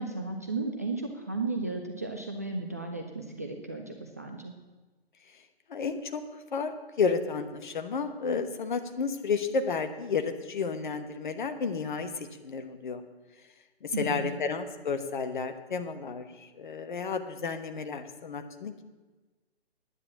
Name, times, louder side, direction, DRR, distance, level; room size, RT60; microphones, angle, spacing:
voice 1, 0.0-4.5 13.9-14.3, right 3 dB, 15° right, 3 dB, 0.3 m, -34 dB
voice 2, 5.7-13.0 13.8-18.8, left 5 dB, 50° left, 8 dB, 1.2 m, -32 dB
9.9 x 9.4 x 7.0 m, 1.2 s
figure-of-eight pair, 130°, 31 cm